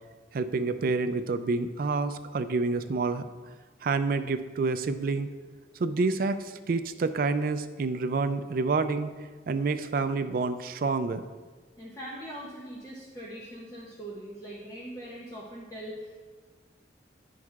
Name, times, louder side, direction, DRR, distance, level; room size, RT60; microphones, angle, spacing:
voice 1, 0.3-3.2 3.8-5.3 5.8-9.1 9.5-11.2, right 3 dB, 50° right, 10 dB, 0.4 m, -28 dB
voice 2, 11.8-16.3, right 1 dB, 20° left, -4 dB, 0.7 m, -41 dB
9.9 x 6.1 x 2.4 m, 1.4 s
head